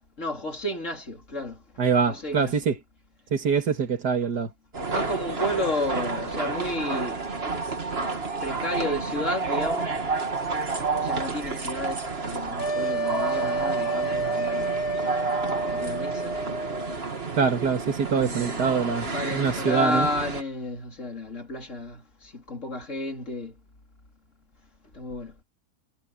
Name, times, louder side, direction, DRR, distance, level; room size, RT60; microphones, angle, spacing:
voice 1, 0.2-1.6 2.1-2.7 4.9-7.2 8.4-9.9 11.0-15.2 15.7-16.4 18.1-23.5 24.9-25.3, left 1 dB, 50° left, 4.1 m, -32 dB
voice 2, 1.8-2.7 3.3-4.5 17.4-20.1, right 6 dB, 85° right, 2.6 m, -24 dB
sound 1, 4.7-20.4, right 4 dB, 40° right, 2.1 m, -30 dB
sound 2, 12.6-17.0, right 3 dB, 70° left, 3.4 m, -29 dB
omnidirectional pair, 1.7 m